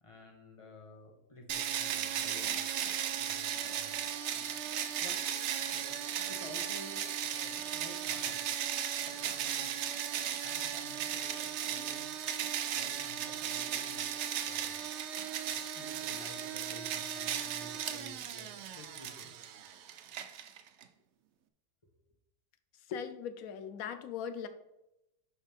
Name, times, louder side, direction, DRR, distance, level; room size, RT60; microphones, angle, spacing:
voice 1, 0.0-2.8 3.2-4.1 4.3-4.5 5.0-5.2 5.7-9.7 10.4-12.3 12.7-14.9 15.4-19.4, left 1 dB, 20° left, 2 dB, 1.1 m, -52 dB
sound 1, 1.5-20.8, right 9 dB, 90° right, 0.6 m, -36 dB
voice 2, 22.9-24.5, left 7 dB, 65° left, 10 dB, 1.0 m, -39 dB
11.0 x 4.2 x 3.5 m, 0.87 s
omnidirectional pair, 1.8 m